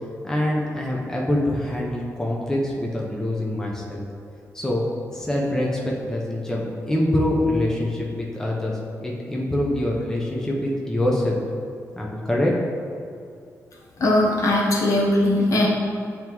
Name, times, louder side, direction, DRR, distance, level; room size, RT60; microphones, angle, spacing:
voice 1, 0.2-4.0 4.5-4.9 5.1-11.4 11.9-12.5, left 1 dB, 10° left, -3 dB, 0.7 m, -25 dB
voice 2, 14.0-15.7, left 1 dB, 65° left, -2 dB, 1.0 m, -19 dB
8.7 x 3.5 x 3.0 m, 2.3 s
wide cardioid pair, 115°, 6 cm